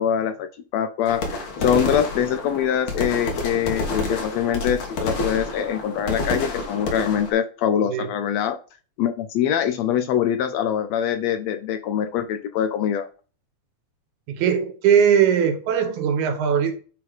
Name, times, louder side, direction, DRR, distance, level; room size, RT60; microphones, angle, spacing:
voice 1, 0.0-8.6 9.0-13.1, left 9 dB, 80° left, 8 dB, 1.6 m, -24 dB
sound 1, 1.1-7.3, left 2 dB, 50° left, 1.9 m, -28 dB
voice 2, 14.3-16.7, right 8 dB, 85° right, 7 dB, 2.5 m, -20 dB
9.5 x 3.5 x 3.7 m, 0.37 s
omnidirectional pair, 3.4 m